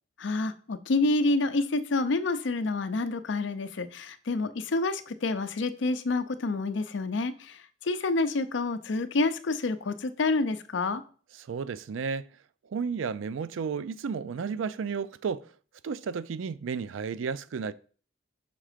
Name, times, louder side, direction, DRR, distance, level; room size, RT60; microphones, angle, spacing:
voice 1, 0.2-11.0, left 3 dB, 70° left, 0.5 m, -28 dB
voice 2, 11.4-12.3 12.7-15.5 15.8-17.7, right 5 dB, 85° right, 0.4 m, -32 dB
5.9 x 3.7 x 5.0 m
head